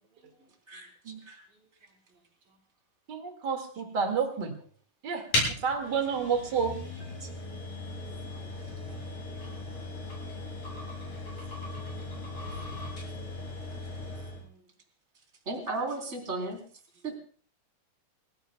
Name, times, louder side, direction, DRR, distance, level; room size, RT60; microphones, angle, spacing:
voice 1, 0.1-0.5 0.7-0.9 1.5-1.7 2.1-2.2 2.5-2.6 7.7-8.5 9.0-9.1 9.8-10.4 12.0-12.5 12.8-14.7 17.0-17.1, right 2 dB, 70° right, -1 dB, 5.7 m, -66 dB
voice 2, 3.1-4.5 5.0-5.2 5.6-6.7, right 6 dB, 35° right, 3 dB, 2.0 m, -29 dB
sound 1, 5.3-14.5, left 2 dB, 60° left, 8.9 m, -36 dB
voice 3, 8.1-8.4 9.4-9.6 15.5-16.6 17.0-17.2, right 3 dB, 20° right, 2 dB, 3.6 m, -35 dB
29.0 x 17.0 x 2.3 m, 0.43 s
omnidirectional pair, 4.0 m